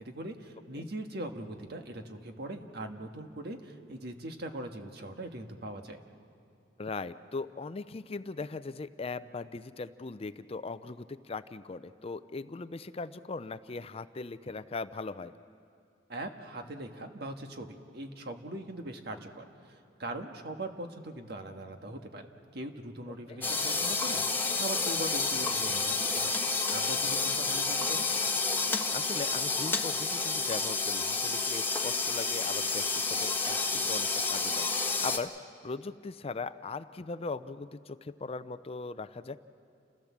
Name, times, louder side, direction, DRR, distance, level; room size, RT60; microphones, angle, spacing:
voice 1, 0.0-6.0 16.1-22.2 22.5-26.3 26.7-28.1, right 1 dB, 60° right, 5 dB, 1.6 m, -41 dB
voice 2, 6.8-15.3 23.1-23.4 28.9-34.7 35.0-35.3 35.6-39.4, left 3 dB, 35° left, 13 dB, 0.5 m, -39 dB
sound 1, 23.4-35.2, left 4 dB, 10° left, 1.2 m, -30 dB
29.5 x 15.5 x 7.3 m, 2.6 s
head